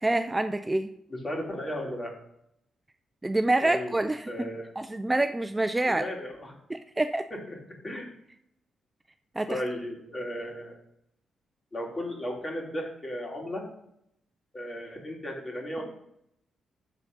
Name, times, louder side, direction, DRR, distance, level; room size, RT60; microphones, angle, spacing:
voice 1, 0.0-0.9 3.2-4.3 4.8-6.0 6.7-7.3 9.4-9.6, right 2 dB, 20° right, 9 dB, 0.4 m, -26 dB
voice 2, 1.1-2.1 3.6-3.9 4.3-4.7 5.9-6.5 7.3-7.6 7.8-8.1 9.5-10.7 11.7-13.7 14.5-15.8, equal, 35° left, -1 dB, 2.8 m, -35 dB
7.1 x 4.4 x 5.3 m, 0.76 s
supercardioid pair, 60°, 0 cm